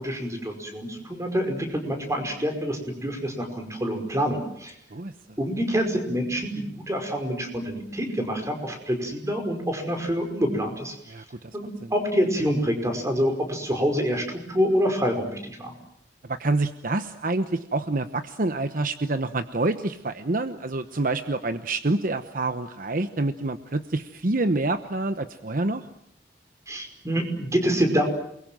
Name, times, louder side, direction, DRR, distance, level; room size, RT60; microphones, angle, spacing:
voice 1, 0.0-4.8 5.4-11.0 11.5-15.7 26.7-28.1, equal, 20° right, 5 dB, 5.3 m, -26 dB
voice 2, 11.1-11.5 11.8-11.9 16.3-25.8, right 2 dB, 50° right, 10 dB, 1.0 m, -27 dB
28.5 x 22.5 x 7.7 m, 0.73 s
head